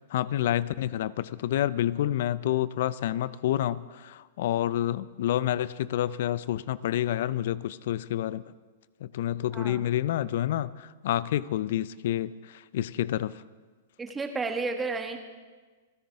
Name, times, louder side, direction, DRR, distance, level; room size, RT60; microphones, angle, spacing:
voice 1, 0.1-8.4 9.0-13.4, left 12 dB, 60° left, 19 dB, 0.5 m, -28 dB
voice 2, 9.5-9.8 14.0-15.2, right 3 dB, 15° right, 4 dB, 1.7 m, -32 dB
29.0 x 10.0 x 3.6 m, 1.4 s
hypercardioid pair, 110°, 0 cm